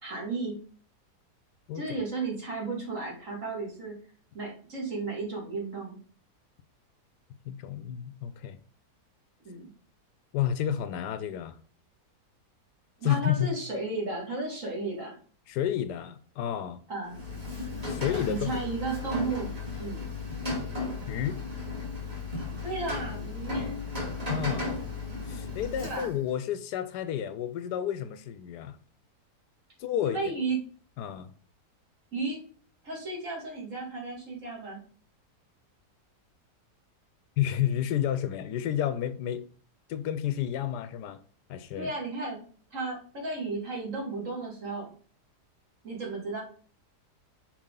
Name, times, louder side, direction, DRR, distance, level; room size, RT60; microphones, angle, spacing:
voice 1, 0.0-0.6 1.7-3.9 4.3-6.0 9.4-9.7 13.0-15.2 16.9-17.1 18.3-19.5 19.8-20.1 22.3-23.7 25.8-26.1 30.0-30.6 32.1-32.4 32.8-34.8 41.8-42.4 42.7-44.9 45.8-46.4, right 3 dB, 50° right, 2.7 m, -34 dB
voice 2, 7.5-8.6 10.3-11.6 13.0-13.5 15.5-16.8 17.8-18.6 21.1-21.4 24.3-24.7 25.2-28.8 29.8-30.2 31.0-31.3 37.4-39.4 39.9-41.2 41.5-41.9, left 10 dB, 80° left, 1.1 m, -30 dB
Rain, 17.0-26.3, left 3 dB, 20° right, 2.4 m, -35 dB
6.1 x 4.5 x 3.7 m
omnidirectional pair, 1.8 m